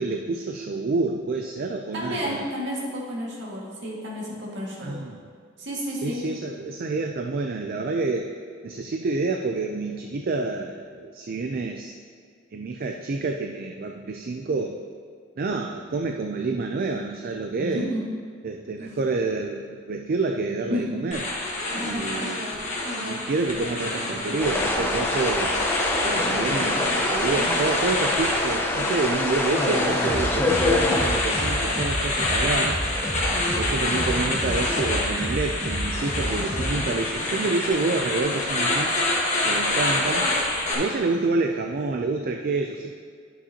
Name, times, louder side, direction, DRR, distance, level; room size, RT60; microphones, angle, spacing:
voice 1, 0.0-2.5 4.8-5.2 6.0-8.3 8.6-12.0 12.5-14.8 15.4-17.9 18.4-21.2 21.8-22.7 22.9-25.6 26.0-32.8 33.6-39.0 39.5-40.3 40.7-42.9, right 3 dB, 50° right, 4 dB, 0.4 m, -28 dB
voice 2, 1.9-5.0 5.6-6.2 17.6-18.0 18.8-18.9 20.7-21.0 21.7-22.0, equal, 65° right, -4 dB, 2.0 m, -31 dB
sound 1, 21.1-40.7, left 2 dB, 40° left, 1.6 m, -27 dB
sound 2, 24.4-31.7, left 2 dB, 10° left, 0.7 m, -26 dB
sound 3, 30.0-37.2, equal, 20° right, 2.3 m, -31 dB
11.0 x 7.1 x 2.9 m, 2.2 s
head